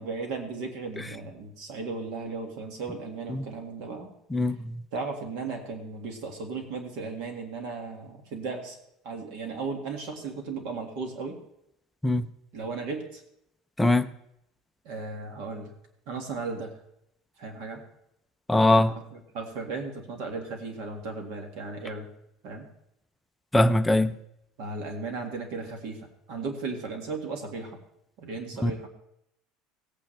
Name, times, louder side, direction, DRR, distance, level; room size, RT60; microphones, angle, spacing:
voice 1, 0.0-4.1 4.9-8.8 9.0-11.4 12.5-13.2 14.9-15.7 16.1-16.8 17.4-17.8 18.7-22.1 22.4-22.7 24.6-26.0 26.3-27.8 28.2-28.9, right 4 dB, 55° right, 1.9 m, -36 dB
voice 2, 4.3-4.8 12.0-12.3 13.8-14.1 18.5-18.9 23.5-24.1 28.6-28.7, left 1 dB, 5° left, 0.4 m, -21 dB
18.0 x 8.9 x 3.3 m
cardioid pair, 175°, 0 cm